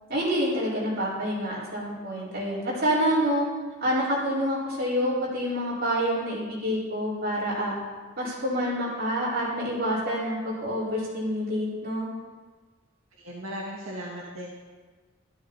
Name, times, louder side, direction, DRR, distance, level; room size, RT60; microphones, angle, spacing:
voice 1, 0.1-3.4 3.8-7.7 8.2-12.1, equal, 50° right, -8 dB, 5.0 m, -27 dB
voice 2, 13.2-14.5, equal, 80° right, -4 dB, 2.0 m, -37 dB
13.0 x 12.5 x 4.2 m, 1.4 s
head